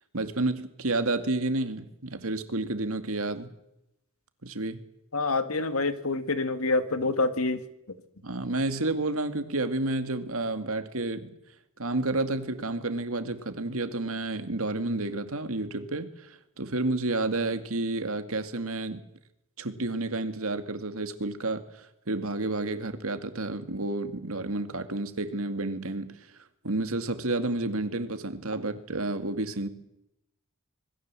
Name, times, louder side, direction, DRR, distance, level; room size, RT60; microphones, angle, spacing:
voice 1, 0.1-3.5 4.4-4.8 7.0-7.1 8.2-11.3 11.8-19.0 19.6-26.1 26.6-29.7, right 2 dB, 70° right, 9 dB, 2.3 m, -30 dB
voice 2, 5.1-7.6, left 3 dB, 75° left, 10 dB, 2.0 m, -27 dB
26.0 x 21.0 x 7.6 m, 0.85 s
head